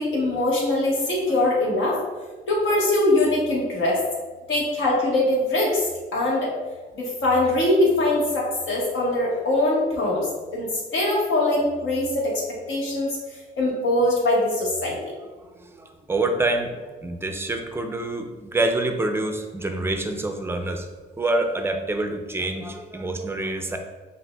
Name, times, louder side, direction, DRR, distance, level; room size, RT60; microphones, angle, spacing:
voice 1, 0.0-2.0 2.5-4.0 4.5-6.5 6.9-10.3 10.5-12.3 12.7-13.2 13.6-15.0, left 1 dB, 70° left, -4 dB, 1.3 m, -22 dB
voice 2, 15.5-20.9 21.2-23.8, right 2 dB, 10° right, 5 dB, 0.5 m, -26 dB
5.7 x 2.6 x 2.2 m, 1.3 s
cardioid pair, 90°, 20 cm